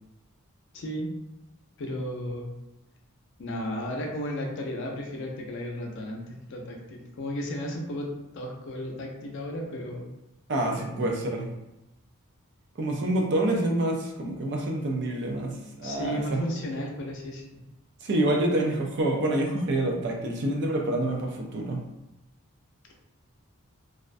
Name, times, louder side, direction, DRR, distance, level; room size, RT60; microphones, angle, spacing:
voice 1, 0.7-1.1 1.8-2.5 3.4-8.1 8.3-10.1 10.9-11.1 15.8-17.4, equal, 55° left, 0 dB, 0.4 m, -34 dB
voice 2, 10.5-11.5 12.8-16.4 18.0-21.8, right 1 dB, 50° right, 1 dB, 0.4 m, -27 dB
2.3 x 2.1 x 2.5 m, 0.94 s
head